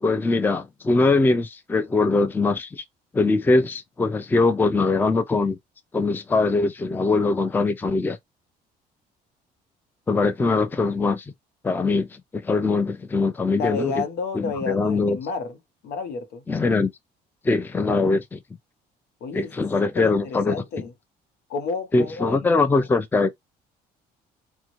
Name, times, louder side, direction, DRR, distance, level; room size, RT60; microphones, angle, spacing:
voice 1, 0.0-2.8 3.1-5.6 5.9-8.2 10.1-11.2 11.6-14.0 14.3-15.2 16.5-16.9 17.4-18.4 19.3-20.6 21.9-23.3, left 3 dB, 10° left, 0.4 m, -22 dB
voice 2, 13.5-15.6 15.8-16.4 19.2-20.9 21.5-22.9, left 4 dB, 80° left, 0.9 m, -31 dB
3.5 x 2.1 x 3.0 m
cardioid pair, 110°, 17 cm